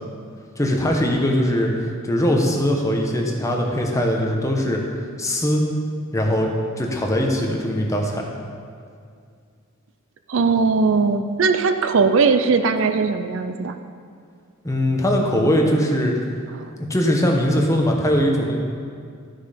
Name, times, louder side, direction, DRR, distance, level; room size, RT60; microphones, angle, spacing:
voice 1, 0.6-1.7 2.1-4.8 5.2-5.6 6.1-6.5 6.8-8.3 14.6-16.1 16.8-18.6, equal, 15° left, 0 dB, 1.1 m, -20 dB
voice 2, 10.3-13.8, right 4 dB, 65° right, 9 dB, 0.5 m, -19 dB
12.0 x 6.2 x 5.1 m, 2.2 s
head